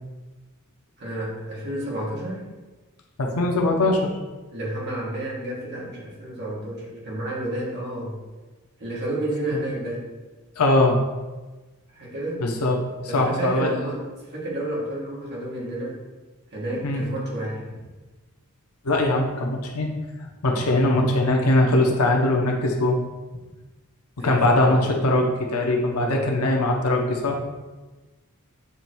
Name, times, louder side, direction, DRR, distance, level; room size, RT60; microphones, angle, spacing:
voice 1, 1.0-2.5 4.5-8.2 8.8-10.1 11.9-12.4 13.1-14.0 14.3-16.0 16.5-17.6 24.2-24.8 25.9-26.3, right 1 dB, 50° right, -4 dB, 1.8 m, -30 dB
voice 2, 3.2-4.1 10.6-11.0 12.4-12.8 13.0-13.7 16.8-17.0 18.8-19.9 20.4-23.0 24.2-27.4, left 2 dB, 80° left, 1 dB, 0.8 m, -21 dB
7.1 x 3.0 x 4.5 m, 1.2 s
head